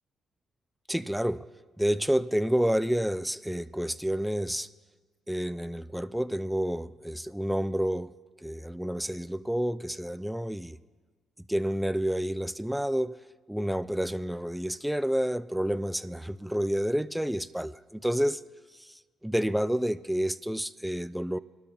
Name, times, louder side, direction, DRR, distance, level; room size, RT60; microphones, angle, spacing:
voice 1, 0.9-1.5 1.8-4.7 5.3-8.1 8.4-10.8 11.5-13.2 13.5-18.4 18.8-21.4, equal, ahead, 0.3 m, -29 dB
23.5 x 12.5 x 2.9 m
cardioid pair, 90°, 0 cm